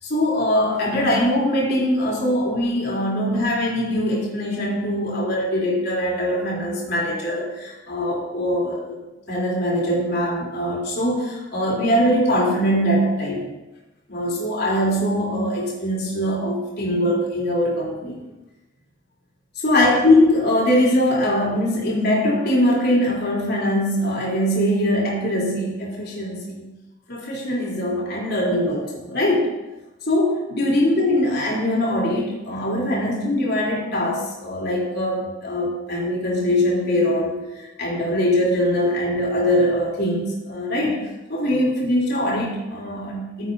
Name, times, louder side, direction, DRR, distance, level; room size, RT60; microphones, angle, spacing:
voice 1, 0.0-9.0 9.3-13.5 14.1-18.2 19.6-26.7 27.1-29.5 30.1-41.0 41.3-43.5, left 1 dB, 60° left, -4 dB, 3.7 m, -22 dB
15.0 x 8.3 x 4.0 m, 1.1 s
head